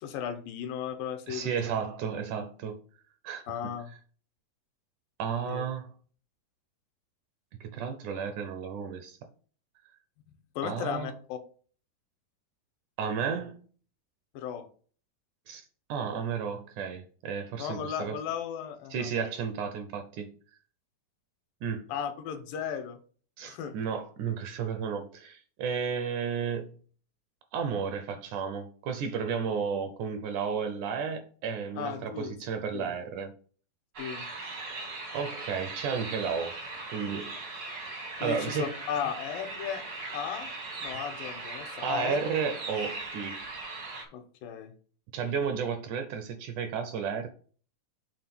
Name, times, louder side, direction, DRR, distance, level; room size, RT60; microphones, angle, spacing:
voice 1, 0.0-1.5 3.5-3.9 5.5-5.7 10.6-11.4 14.3-14.7 17.6-19.1 21.9-23.0 23.5-23.7 31.8-32.3 32.7-32.9 34.0-34.3 34.8-34.9 38.2-39.8 40.1-40.5 40.8-42.2 44.1-44.7, left 8 dB, 80° left, 2.5 m, -35 dB
voice 2, 1.3-2.8 3.2-3.7 5.2-5.9 7.6-9.2 10.6-11.1 13.0-13.6 15.5-15.6 15.9-18.2 18.9-20.3 21.6-21.9 23.4-26.7 27.5-33.3 35.1-36.6 36.9-37.6 38.2-38.7 41.8-43.5 45.1-47.3, right 6 dB, 75° right, 1.9 m, -33 dB
sound 1, 33.9-44.0, right 3 dB, 60° right, 1.0 m, -39 dB
6.7 x 3.6 x 5.9 m
omnidirectional pair, 4.1 m